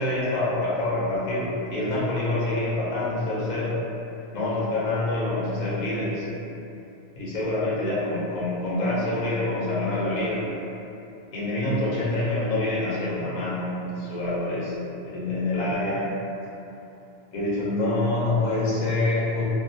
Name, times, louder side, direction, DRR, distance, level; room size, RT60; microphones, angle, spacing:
voice 1, 0.0-3.8 4.3-6.2 7.2-10.4 11.3-14.7 15.0-16.1 17.3-19.4, left 2 dB, 50° left, -8 dB, 0.5 m, -26 dB
2.3 x 2.1 x 2.6 m, 2.8 s
omnidirectional pair, 1.2 m